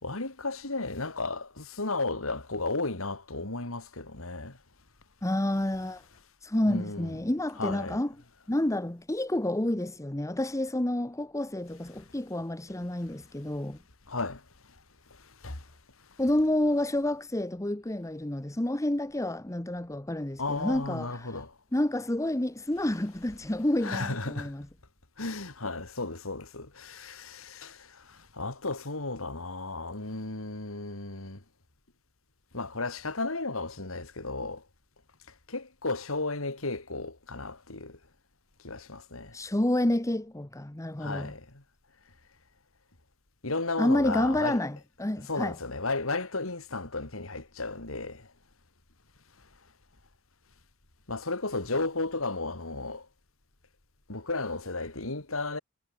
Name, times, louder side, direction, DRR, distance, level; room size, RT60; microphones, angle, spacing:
voice 1, 0.0-4.5 6.7-7.2 7.6-8.0 14.1-14.4 15.4-15.6 20.4-21.5 23.8-24.5 25.2-27.8 28.4-31.4 32.5-34.6 35.5-38.0 38.6-39.3 41.0-41.4 43.4-44.6 45.3-48.2 51.1-53.0 54.1-55.6, left 3 dB, 85° left, 3.1 m, -34 dB
voice 2, 5.2-6.0 6.4-8.1 8.5-13.8 16.2-21.4 21.7-24.7 39.3-41.3 43.8-45.6, left 1 dB, 15° left, 1.0 m, -29 dB
head